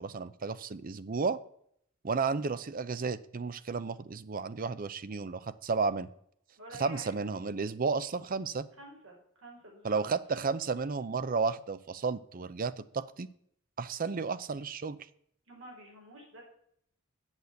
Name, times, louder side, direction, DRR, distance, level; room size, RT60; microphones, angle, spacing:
voice 1, 0.0-1.4 2.0-6.1 6.8-8.7 9.8-13.3 13.8-15.0, right 4 dB, 45° right, 15 dB, 0.5 m, -32 dB
voice 2, 6.6-7.1 8.8-9.2 9.4-10.0 15.5-16.4, right 1 dB, 75° right, -1 dB, 4.7 m, -48 dB
8.1 x 6.8 x 8.1 m, 0.67 s
head